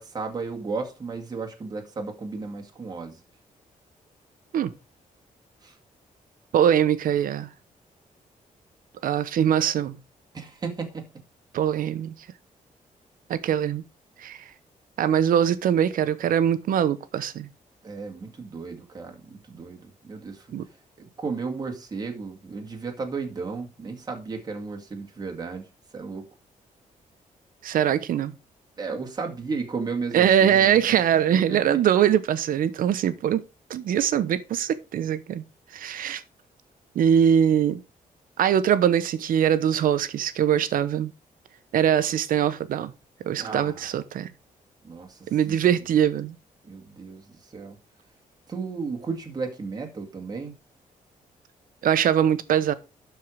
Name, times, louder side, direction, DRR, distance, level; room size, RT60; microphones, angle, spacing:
voice 1, 0.0-3.2 5.6-5.8 10.3-11.2 17.8-20.5 21.0-25.6 25.9-26.3 28.8-31.8 43.4-43.9 44.8-45.6 46.6-47.8 48.5-50.6, right 4 dB, 30° right, 2.1 m, -34 dB
voice 2, 6.5-7.5 9.0-10.0 11.5-12.1 13.3-13.8 14.2-14.4 15.0-17.5 20.5-20.7 27.6-28.3 30.1-33.4 33.7-35.4 35.7-36.2 36.9-37.8 38.4-41.1 41.7-42.9 43.2-44.3 45.3-46.3 51.8-52.7, right 9 dB, 85° right, 1.0 m, -22 dB
12.0 x 4.7 x 5.0 m
wide cardioid pair, 140°, 14 cm